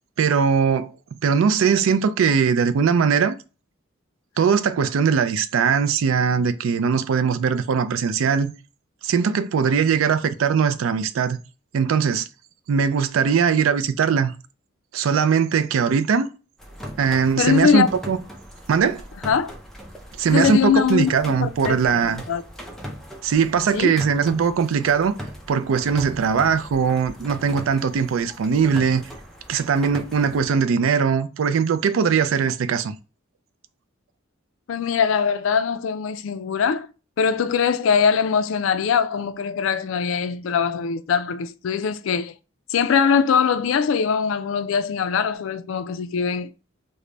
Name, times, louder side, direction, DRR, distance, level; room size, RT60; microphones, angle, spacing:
voice 1, 0.2-0.9 1.2-3.4 4.4-8.5 9.0-11.4 11.7-12.3 12.7-14.3 14.9-16.3 17.0-18.2 18.7-19.0 20.2-22.2 23.2-25.2 25.5-29.0 29.5-33.0, right 6 dB, 80° right, 0.4 m, -20 dB
sound 1, 16.6-30.5, equal, ahead, 0.4 m, -39 dB
voice 2, 17.4-17.9 19.2-19.5 20.3-21.1 21.4-22.4 23.7-24.0 34.7-36.9 37.2-42.3 42.7-46.5, left 6 dB, 75° left, 0.3 m, -22 dB
3.3 x 2.1 x 3.7 m
head